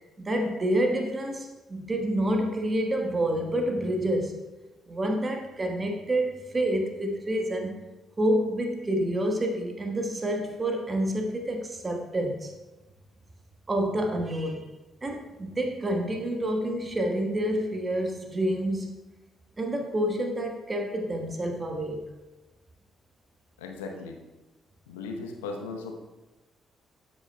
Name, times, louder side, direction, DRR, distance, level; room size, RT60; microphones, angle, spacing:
voice 1, 0.2-4.4 4.9-7.7 8.2-12.5 13.7-14.7 15.0-18.9 19.6-22.1, right 1 dB, 25° right, 3 dB, 1.2 m, -28 dB
voice 2, 23.6-24.2 24.9-25.9, left 4 dB, 75° left, 3 dB, 0.8 m, -37 dB
12.5 x 6.3 x 2.2 m, 1.1 s
figure-of-eight pair, 40°, 0 cm